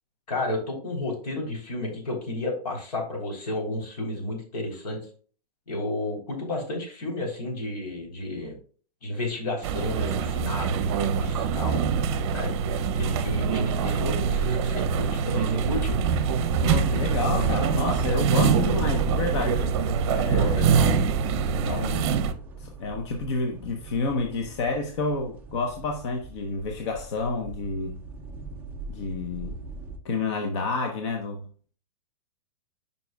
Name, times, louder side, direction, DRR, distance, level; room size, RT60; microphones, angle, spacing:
voice 1, 0.3-5.0 5.7-8.6 9.0-11.8 12.3-12.5 13.0-16.0 20.3-21.0 21.5-21.8, left 2 dB, 75° left, 3.6 m, -32 dB
sound 1, 9.6-22.3, right 6 dB, 40° right, 0.7 m, -24 dB
sound 2, 15.3-30.0, right 3 dB, 10° right, 0.3 m, -37 dB
voice 2, 16.6-19.7 20.1-20.7 21.6-22.1 22.6-28.0 28.9-29.5 30.0-31.4, left 3 dB, 45° left, 0.8 m, -29 dB
9.5 x 5.4 x 2.3 m
supercardioid pair, 170°, 21 cm